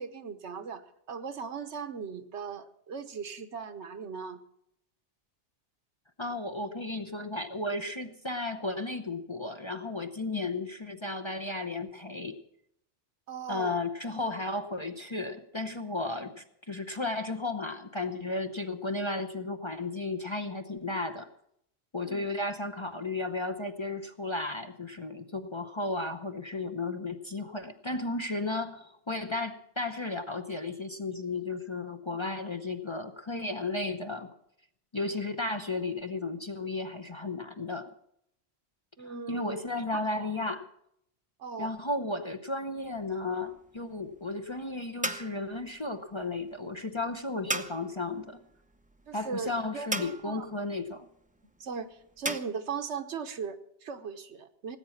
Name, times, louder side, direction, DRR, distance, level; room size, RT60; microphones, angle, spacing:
voice 1, 0.0-4.4 13.3-13.8 22.0-22.2 39.0-39.7 39.9-40.3 41.4-41.7 49.1-50.4 51.6-54.8, right 5 dB, 75° right, 9 dB, 1.3 m, -38 dB
voice 2, 6.2-12.4 13.5-21.3 21.9-34.3 34.9-37.9 39.0-40.7 41.6-48.4 49.1-51.1, left 2 dB, 30° left, 7 dB, 0.7 m, -34 dB
sound 1, 42.8-52.4, right 2 dB, 10° right, 0.5 m, -39 dB
18.0 x 8.7 x 7.2 m, 0.76 s
omnidirectional pair, 1.2 m